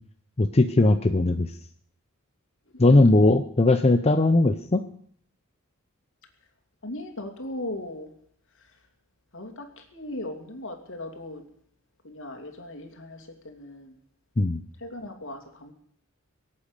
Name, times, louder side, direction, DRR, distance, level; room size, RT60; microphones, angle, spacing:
voice 1, 0.4-1.5 2.8-4.8 14.4-14.6, left 2 dB, 30° left, 7 dB, 0.6 m, -19 dB
voice 2, 6.8-8.1 8.6-8.7 9.3-11.4 12.0-13.9 14.8-15.7, left 1 dB, 65° left, 4 dB, 2.7 m, -38 dB
23.0 x 8.5 x 6.6 m, 0.63 s
head